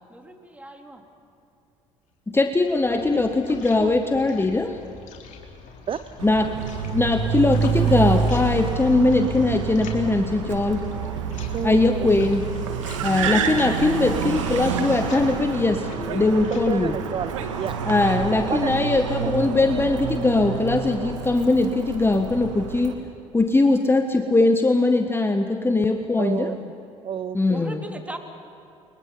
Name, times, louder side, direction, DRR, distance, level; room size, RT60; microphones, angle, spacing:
voice 1, 0.1-1.0 27.5-28.2, right 1 dB, 10° right, 3.6 m, -38 dB
sound 1, 2.3-18.3, left 4 dB, 50° left, 3.6 m, -45 dB
voice 2, 2.3-4.8 6.2-6.6 6.9-10.9 11.6-12.4 13.0-17.0 17.9-23.0 23.3-26.6 27.3-27.8, left 2 dB, 15° left, 1.3 m, -21 dB
Car, 6.2-22.9, right 6 dB, 75° right, 1.8 m, -28 dB
voice 3, 11.5-12.3 16.7-17.8 18.5-18.8 19.1-19.3 26.2-26.6 27.0-27.7, right 8 dB, 35° right, 0.7 m, -30 dB
29.5 x 22.5 x 5.6 m
figure-of-eight pair, 60°, 16 cm